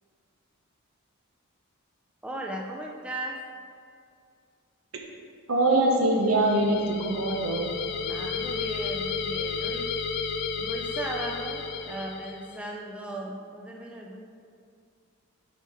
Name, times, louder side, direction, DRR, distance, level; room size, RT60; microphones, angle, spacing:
voice 1, 2.2-3.4 8.1-9.9 10.6-14.2, right 1 dB, 5° right, -1 dB, 0.5 m, -37 dB
voice 2, 5.5-7.7, right 2 dB, 75° right, 1 dB, 0.9 m, -23 dB
sound 1, 6.2-12.6, left 5 dB, 50° left, 0.4 m, -32 dB
6.9 x 4.5 x 4.8 m, 2.2 s
head